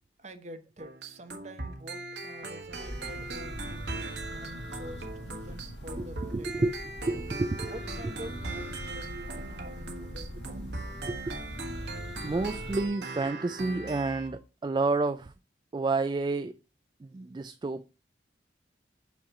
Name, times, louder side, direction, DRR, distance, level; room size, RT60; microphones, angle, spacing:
voice 1, 0.2-6.7 7.7-10.7 17.2-17.3, right 1 dB, 40° right, 0.9 m, -47 dB
sound 1, 0.8-14.4, right 2 dB, 75° right, 1.5 m, -40 dB
Church bell, 2.6-12.9, equal, 75° left, 1.4 m, -42 dB
voice 2, 6.0-6.7 7.1-7.7 11.1-11.4 12.2-15.3 15.7-16.5 17.0-17.8, right 3 dB, 25° right, 0.3 m, -30 dB
8.4 x 3.0 x 6.3 m
head